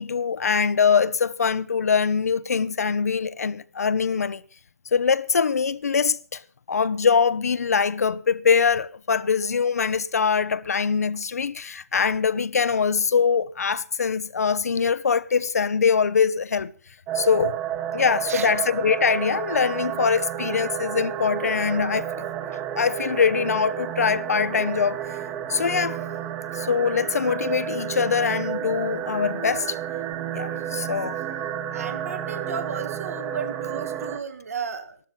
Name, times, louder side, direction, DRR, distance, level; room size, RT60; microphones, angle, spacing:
voice 1, 0.0-4.4 4.9-6.4 6.7-16.7 17.1-17.6 17.9-22.3 22.8-25.0 25.5-26.0 26.5-29.8 30.3-31.2, left 6 dB, 70° left, 0.9 m, -23 dB
sound 1, 17.1-34.2, right 10 dB, 20° right, 1.3 m, -31 dB
voice 2, 31.7-35.0, right 6 dB, 65° right, 2.9 m, -34 dB
13.5 x 12.5 x 5.7 m
hypercardioid pair, 145°, 9 cm